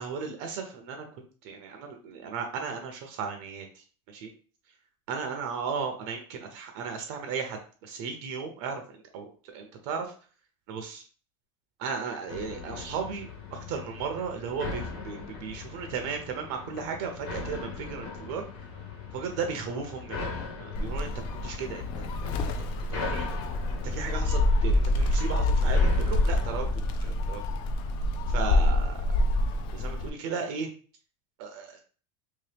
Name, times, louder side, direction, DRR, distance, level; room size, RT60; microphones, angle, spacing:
voice 1, 0.0-4.3 5.1-10.1 10.7-11.0 11.8-18.4 19.1-20.2 20.6-21.1 21.4-22.3 22.6-23.3 23.8-27.4 28.3-29.0 29.7-30.7 31.4-31.8, right 5 dB, 50° right, 4 dB, 0.6 m, -35 dB
sound 1, 12.3-26.7, left 4 dB, 75° left, 1.4 m, -40 dB
Gull seagull, 20.7-30.1, left 1 dB, 35° left, 0.4 m, -26 dB
3.1 x 2.8 x 3.3 m, 0.39 s
supercardioid pair, 170°, 13 cm